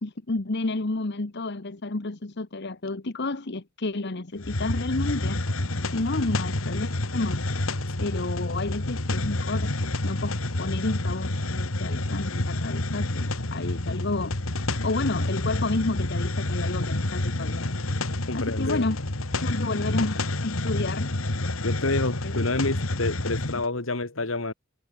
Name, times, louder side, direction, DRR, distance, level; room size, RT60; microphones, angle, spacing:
voice 1, 0.0-5.4 5.9-7.4 8.0-9.7 10.0-17.7 18.3-19.0 19.4-21.1 21.8-22.8, left 2 dB, 55° left, 1.2 m, -31 dB
Hiss, 4.4-23.7, left 2 dB, 90° left, 2.3 m, -29 dB
voice 2, 18.3-18.9 21.6-24.5, left 2 dB, 70° left, 2.3 m, -28 dB
head